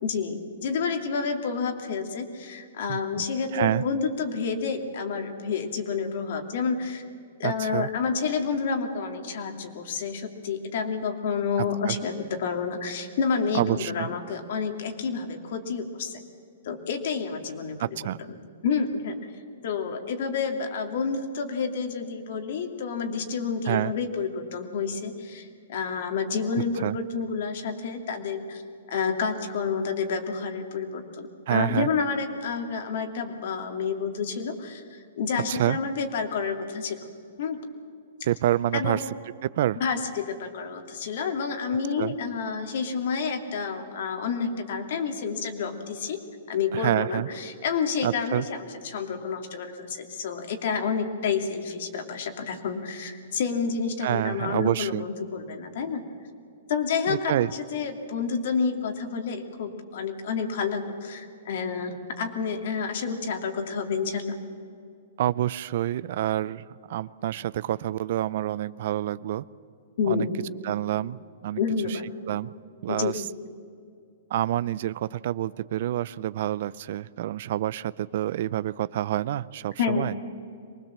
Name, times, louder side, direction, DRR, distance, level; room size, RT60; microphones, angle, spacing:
voice 1, 0.0-7.0 7.4-16.2 16.6-18.1 18.6-19.2 19.6-28.6 28.9-37.1 37.4-37.6 38.7-39.0 39.8-46.2 46.5-56.0 56.7-64.4 70.0-70.3 71.6-72.1 72.9-73.1 79.8-80.1, left 5 dB, 60° left, 5 dB, 2.7 m, -29 dB
voice 2, 2.9-3.2 3.5-3.8 7.4-7.9 11.9-12.0 13.5-14.1 17.8-18.2 23.7-23.9 26.8-27.0 31.5-31.9 35.5-35.8 38.3-39.0 39.4-39.8 42.0-42.2 46.7-47.3 48.0-48.5 54.0-55.0 57.1-57.5 65.2-69.4 70.1-70.3 70.6-71.6 71.9-72.0 72.3-72.5 72.8-73.1 74.3-80.1, right 13 dB, 55° right, 19 dB, 0.5 m, -27 dB
23.5 x 19.5 x 7.5 m, 2.4 s
hypercardioid pair, 150°, 0 cm